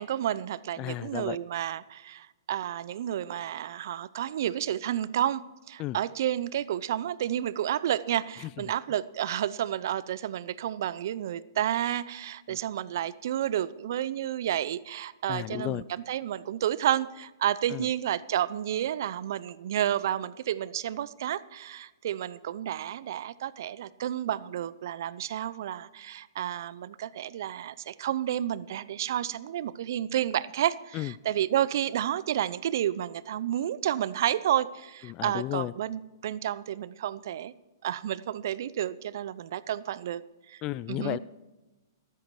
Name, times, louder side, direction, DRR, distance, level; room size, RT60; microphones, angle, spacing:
voice 1, 0.0-37.5 37.8-40.2 40.5-40.6 40.9-41.2, right 11 dB, 60° right, 18 dB, 0.6 m, -31 dB
voice 2, 0.8-1.4 5.8-6.0 8.4-8.5 12.5-12.6 15.3-15.8 17.7-17.9 30.9-31.1 35.0-35.7 40.6-41.2, left 16 dB, 30° left, 19 dB, 0.3 m, -33 dB
13.5 x 13.0 x 4.8 m, 1.1 s
hypercardioid pair, 120°, 2 cm